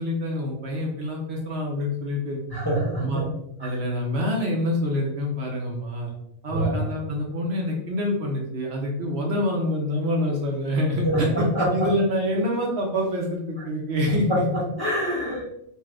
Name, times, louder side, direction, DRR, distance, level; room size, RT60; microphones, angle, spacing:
voice 1, 0.0-2.4 3.0-3.3 3.6-6.1 6.4-11.5 11.7-14.4, left 1 dB, 65° right, 0 dB, 0.8 m, -26 dB
voice 2, 2.5-3.2 6.5-6.8 11.0-11.7 14.8-15.4, right 1 dB, 25° left, -7 dB, 0.7 m, -25 dB
2.6 x 2.4 x 3.2 m, 0.77 s
omnidirectional pair, 1.3 m